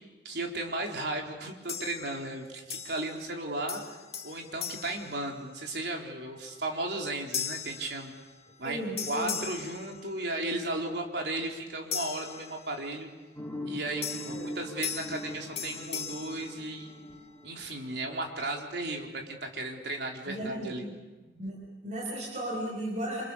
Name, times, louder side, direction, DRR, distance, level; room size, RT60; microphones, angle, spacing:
voice 1, 0.2-3.8 4.2-8.1 8.6-8.8 9.1-13.1 13.6-16.9 17.4-20.9, right 2 dB, 70° right, 1 dB, 3.9 m, -35 dB
sound 1, 1.7-2.3 2.7-3.4 3.7-5.8 6.4-6.6 7.3-8.7 9.0-10.6 11.9-13.1 14.0-17.3, left 7 dB, 35° left, 2.2 m, -39 dB
voice 2, 8.6-9.4 14.3-14.5 20.3-20.9 21.3-23.2, right 1 dB, 45° right, -3 dB, 5.7 m, -35 dB
sound 2, 13.4-18.1, left 1 dB, 10° left, 2.8 m, -42 dB
29.0 x 27.5 x 6.8 m, 1.1 s
head